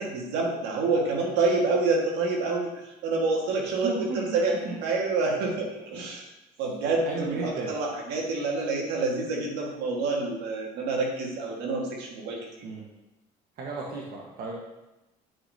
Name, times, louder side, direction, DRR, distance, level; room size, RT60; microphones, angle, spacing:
voice 1, 0.0-6.2 6.6-12.4, right 3 dB, 80° right, -1 dB, 1.7 m, -27 dB
voice 2, 3.8-4.4 4.6-4.8 7.0-7.7 12.6-12.8 13.6-14.6, right 3 dB, 60° right, -2 dB, 1.3 m, -33 dB
9.6 x 5.0 x 2.7 m, 0.98 s
supercardioid pair, 85°, 18 cm